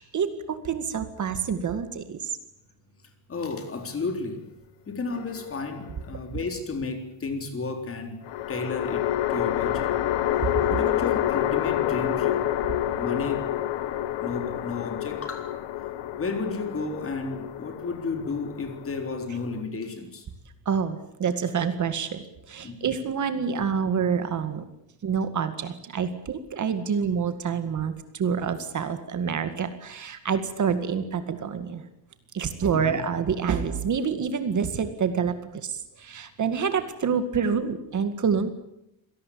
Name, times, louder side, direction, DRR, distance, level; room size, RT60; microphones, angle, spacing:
voice 1, 0.0-2.3 10.6-10.7 20.7-22.2 22.5-24.6 25.0-31.8 32.3-38.5, right 6 dB, 40° right, 2.1 m, -27 dB
voice 2, 3.3-4.4 4.9-8.2 8.5-9.9 10.7-12.5 13.0-13.5 14.2-15.5 16.2-20.3 22.6-23.0 32.7-33.0, left 4 dB, 30° left, 3.9 m, -32 dB
sound 1, 5.1-6.0 8.2-19.6, left 12 dB, 65° left, 1.8 m, -28 dB
26.5 x 18.5 x 8.6 m
cardioid pair, 160°, 46 cm